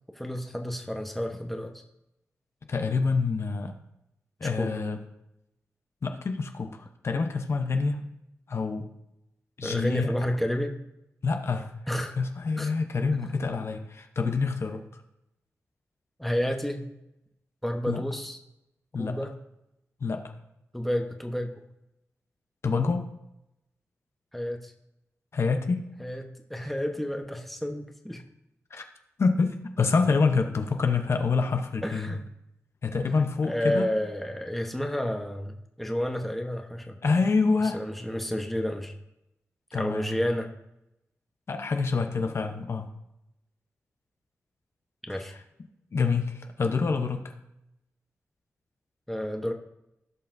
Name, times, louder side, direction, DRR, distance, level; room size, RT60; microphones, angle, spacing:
voice 1, 0.2-1.7 4.4-4.7 9.6-10.7 11.9-12.1 12.6-12.7 13.1-13.2 16.2-16.9 17.6-18.4 19.0-19.3 20.7-21.6 24.3-24.7 26.0-28.2 31.8-32.2 33.5-37.2 37.7-38.9 39.7-40.5 45.1-45.3 49.1-49.5, equal, 5° left, 3 dB, 1.0 m, -30 dB
voice 2, 2.7-3.7 4.4-5.0 6.0-8.0 8.5-8.9 9.6-10.1 11.2-11.7 12.2-14.8 17.9-18.0 18.9-19.2 20.0-20.2 22.6-23.1 25.3-25.8 28.7-28.8 29.2-32.2 32.8-33.9 37.0-37.8 39.7-40.1 41.5-42.9 45.1-45.2 45.9-47.2, left 4 dB, 55° left, 5 dB, 0.8 m, -26 dB
16.0 x 5.5 x 2.6 m, 0.85 s
cardioid pair, 80°, 5 cm